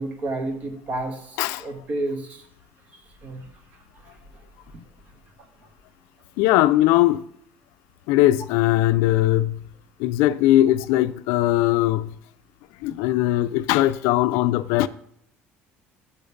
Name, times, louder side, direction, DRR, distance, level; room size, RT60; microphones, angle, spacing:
voice 1, 0.0-2.4 2.9-3.5 4.0-4.2, right 2 dB, 35° right, 1.1 m, -31 dB
voice 2, 6.4-7.2 8.1-9.6 10.0-12.2 12.8-14.9, left 15 dB, 85° left, 0.4 m, -20 dB
7.0 x 5.1 x 6.8 m
cardioid pair, 170°, 5 cm